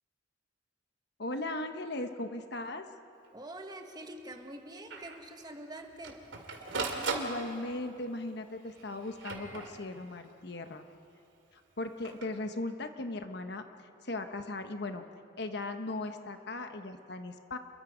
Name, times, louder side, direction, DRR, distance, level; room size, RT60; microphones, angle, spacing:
voice 1, 1.2-2.9 6.8-10.8 11.8-13.6 14.0-15.0 15.4-17.6, left 2 dB, 60° left, 7 dB, 1.2 m, -38 dB
Printer, 3.2-3.3 3.7-3.8 4.1-4.2 4.9-5.2 5.8-7.9 8.7-10.2 11.8-12.3, right 3 dB, 75° right, 2.7 m, -38 dB
voice 2, 3.3-6.2, right 1 dB, 20° right, 4 dB, 1.6 m, -45 dB
29.5 x 22.5 x 5.1 m, 2.8 s
head